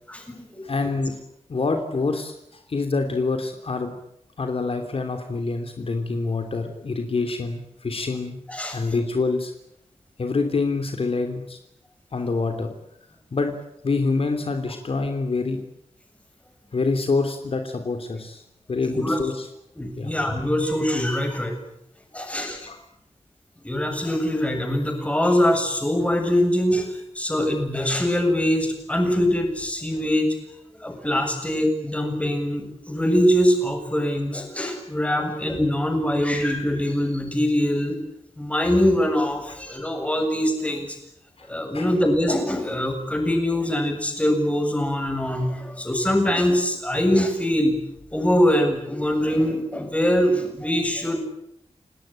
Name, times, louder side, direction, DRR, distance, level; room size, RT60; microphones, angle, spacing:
voice 1, 0.1-0.6 8.5-8.8 18.9-19.2 19.8-21.6 22.1-22.7 23.6-30.3 30.8-38.0 38.4-40.9 41.5-47.8 48.1-51.2, equal, 10° left, 4 dB, 7.5 m, -23 dB
voice 2, 0.6-1.2 1.5-3.9 4.4-8.4 8.7-9.5 10.2-11.6 12.1-12.7 13.3-13.5 13.8-15.6 16.7-18.4 18.7-19.5 20.0-20.1 22.2-22.8 41.4-41.5 41.7-41.9, left 3 dB, 60° left, 6 dB, 3.1 m, -26 dB
30.0 x 19.0 x 8.9 m, 0.80 s
wide cardioid pair, 120°, 11 cm